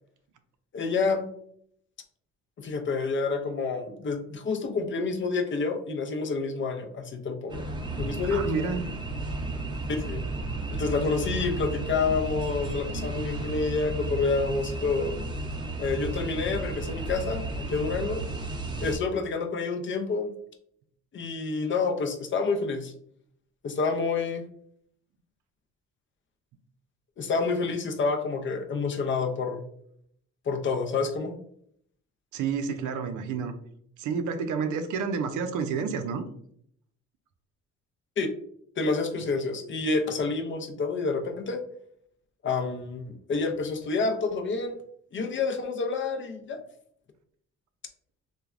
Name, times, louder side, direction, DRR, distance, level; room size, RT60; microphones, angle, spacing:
voice 1, 0.7-1.3 2.6-7.7 8.0-8.7 9.9-10.3 10.7-15.1 15.8-18.2 18.8-20.3 21.1-22.9 23.6-24.5 27.2-29.6 30.5-31.4 38.2-38.3 38.8-41.6 42.4-44.7 45.1-46.6, left 4 dB, 40° left, 5 dB, 0.5 m, -28 dB
sound 1, 7.5-19.0, right 2 dB, 15° right, 0.5 m, -33 dB
voice 2, 8.2-8.8 32.3-33.6 34.0-36.2, right 5 dB, 80° right, 8 dB, 0.5 m, -29 dB
3.2 x 2.2 x 2.4 m, 0.68 s
cardioid pair, 90°, 30 cm